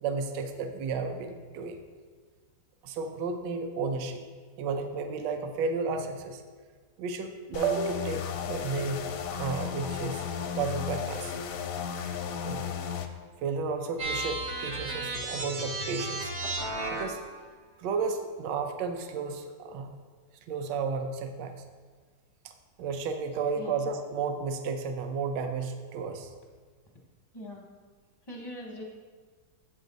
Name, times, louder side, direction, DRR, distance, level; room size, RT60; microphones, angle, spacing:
voice 1, 0.0-1.8 2.8-4.2 4.6-6.4 7.0-9.0 9.3-10.2 10.5-11.3 12.4-12.7 13.4-16.3 16.9-17.2 17.8-19.9 20.5-21.6 22.8-26.3, right 4 dB, 75° right, 6 dB, 1.3 m, -32 dB
sound 1, 7.5-13.1, left 7 dB, 70° left, 0.8 m, -34 dB
sound 2, 14.0-17.3, right 2 dB, 60° right, 1.5 m, -34 dB
voice 2, 28.3-28.8, left 1 dB, 30° left, -2 dB, 0.4 m, -42 dB
7.9 x 6.3 x 4.0 m, 1.5 s
omnidirectional pair, 2.0 m